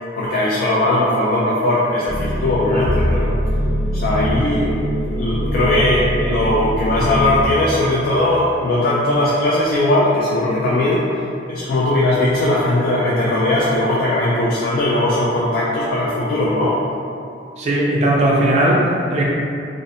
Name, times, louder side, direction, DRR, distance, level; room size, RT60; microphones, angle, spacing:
voice 1, 0.2-3.3 3.9-4.8 5.1-11.0 11.5-16.8, left 1 dB, 55° left, -7 dB, 0.3 m, -18 dB
sound 1, 2.1-7.4, equal, 80° left, 1.2 m, -22 dB
voice 2, 17.6-19.2, right 1 dB, 40° right, -4 dB, 0.3 m, -17 dB
2.5 x 2.0 x 2.6 m, 2.5 s
head